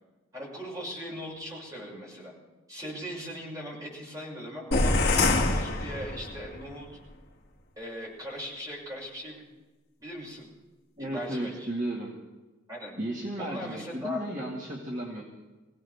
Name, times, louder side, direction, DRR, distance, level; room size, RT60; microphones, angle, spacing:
voice 1, 0.3-2.3 2.7-5.0 5.3-7.0 7.8-9.4 10.0-10.5 11.0-11.7 12.7-13.0 13.4-14.5, equal, 15° right, -4 dB, 6.4 m, -39 dB
sound 1, 4.7-6.6, left 2 dB, 50° left, 2.6 m, -25 dB
voice 2, 11.0-12.1 13.0-15.2, right 1 dB, 35° right, -2 dB, 2.0 m, -34 dB
24.5 x 16.5 x 3.6 m, 1.2 s
head